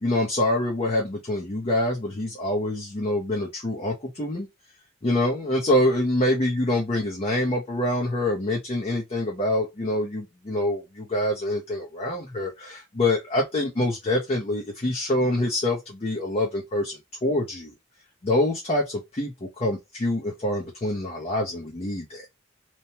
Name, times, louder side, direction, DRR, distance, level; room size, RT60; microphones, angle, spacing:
voice 1, 0.0-4.5 5.0-17.7 18.2-22.3, left 1 dB, 35° left, 0.6 m, -26 dB
3.0 x 2.1 x 2.8 m
head